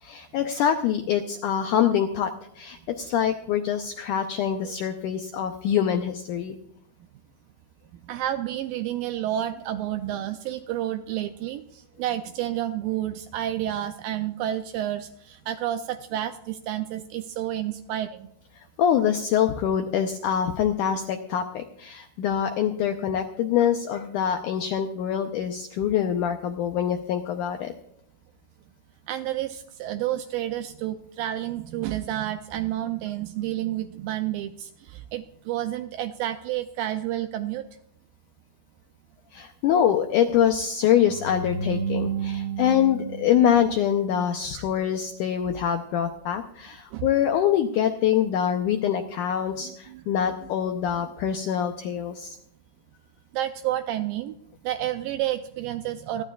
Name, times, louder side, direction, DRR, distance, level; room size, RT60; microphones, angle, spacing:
voice 1, 0.0-6.6 18.6-27.7 39.3-52.4, left 9 dB, 90° left, 6 dB, 1.8 m, -25 dB
voice 2, 8.0-18.3 29.1-37.7 44.5-44.6 46.9-47.1 49.9-50.0 53.3-54.3 54.6-56.2, right 12 dB, 80° right, 8 dB, 2.1 m, -30 dB
sound 1, 41.1-44.3, right 6 dB, 55° right, 6.0 m, -32 dB
28.0 x 11.5 x 2.4 m, 0.72 s
omnidirectional pair, 4.5 m